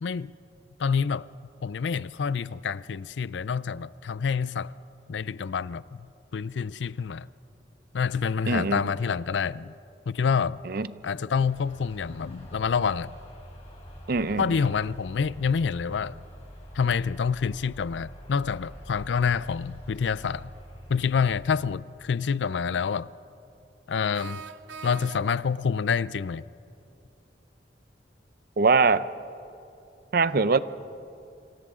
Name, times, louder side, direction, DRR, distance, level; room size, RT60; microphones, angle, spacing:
voice 1, 0.0-0.3 0.8-1.3 1.6-4.7 5.1-7.3 7.9-9.7 10.1-10.6 11.0-13.1 14.4-16.2 16.7-20.5 20.9-23.1 23.9-24.4 24.8-26.5, left 6 dB, 75° left, 0.4 m, -27 dB
voice 2, 8.5-8.8 10.7-10.9 14.1-14.7 28.6-29.0 30.1-30.6, right 4 dB, 55° right, 0.6 m, -22 dB
sound 1, 11.3-21.7, equal, 35° left, 4.0 m, -46 dB
sound 2, 24.1-25.6, right 6 dB, 85° right, 0.8 m, -42 dB
28.5 x 26.0 x 3.7 m
head